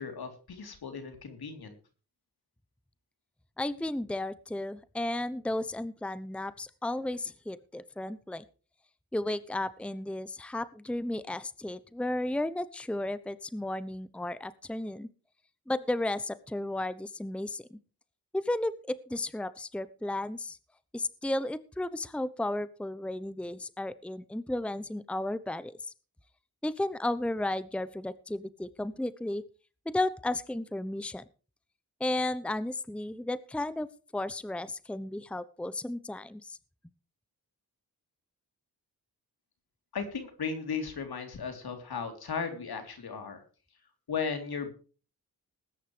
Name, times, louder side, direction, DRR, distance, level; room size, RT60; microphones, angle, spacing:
voice 1, 0.0-1.7 39.9-43.4 44.1-44.7, left 5 dB, 70° left, 7 dB, 3.6 m, -36 dB
voice 2, 3.6-8.4 9.1-15.1 15.7-17.8 18.3-20.6 20.9-25.8 26.6-29.4 29.9-31.2 32.0-33.9 34.1-36.6, left 1 dB, 5° left, 16 dB, 0.9 m, -33 dB
20.0 x 10.0 x 3.3 m, 0.37 s
cardioid pair, 70°, 38 cm